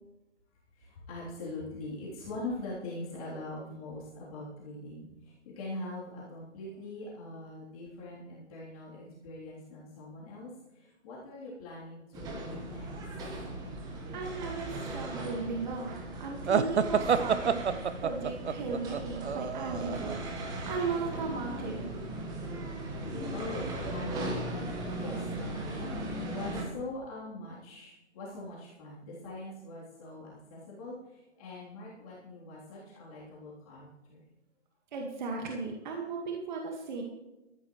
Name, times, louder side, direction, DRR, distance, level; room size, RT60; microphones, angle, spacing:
voice 1, 0.8-12.9 23.3-34.2, left 2 dB, 30° left, -8 dB, 3.5 m, -42 dB
sound 1, 12.1-26.6, right 1 dB, 10° right, 1.4 m, -38 dB
voice 2, 14.1-21.9 34.9-37.0, right 4 dB, 40° right, 1 dB, 1.8 m, -36 dB
sound 2, 16.5-20.1, right 7 dB, 65° right, 0.8 m, -28 dB
14.0 x 13.5 x 3.2 m, 0.99 s
figure-of-eight pair, 150°, 36 cm